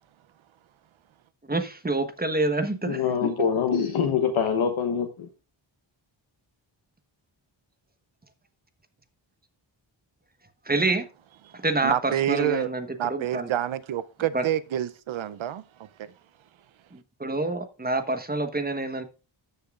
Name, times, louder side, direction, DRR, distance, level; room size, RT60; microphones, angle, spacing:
voice 1, 1.5-3.3 10.7-11.1 11.5-13.5 14.3-14.4 17.2-19.0, right 2 dB, 20° right, 1.1 m, -27 dB
voice 2, 2.8-5.3, left 7 dB, 85° left, 1.2 m, -25 dB
voice 3, 11.8-12.7 13.0-15.6 16.0-16.1, right 11 dB, 75° right, 0.6 m, -27 dB
13.5 x 6.8 x 2.4 m
wide cardioid pair, 130°, 47 cm